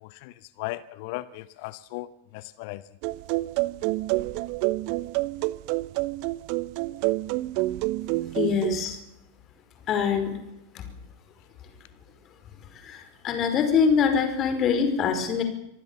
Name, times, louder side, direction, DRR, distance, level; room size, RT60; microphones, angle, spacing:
voice 1, 0.0-2.1 2.3-2.8, left 18 dB, 45° left, 18 dB, 0.9 m, -37 dB
sound 1, 3.0-8.9, right 20 dB, 45° right, 0.9 m, -28 dB
voice 2, 8.3-9.0 9.9-10.4 10.7-10.9 12.7-15.4, left 6 dB, 30° left, 8 dB, 5.0 m, -24 dB
25.5 x 19.0 x 7.2 m, 0.88 s
figure-of-eight pair, 90°, 0 cm